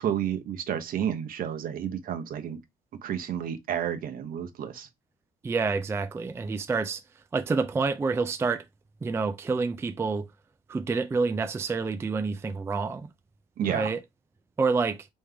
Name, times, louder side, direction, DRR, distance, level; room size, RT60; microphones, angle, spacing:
voice 1, 0.0-2.6 3.0-4.9 13.6-13.9, right 9 dB, 60° right, 0.9 m, -31 dB
voice 2, 5.4-7.0 7.3-8.6 9.0-10.3 10.7-13.1 13.7-14.0 14.6-15.1, right 4 dB, 15° right, 0.3 m, -28 dB
3.6 x 3.1 x 3.3 m
cardioid pair, 110°, 17 cm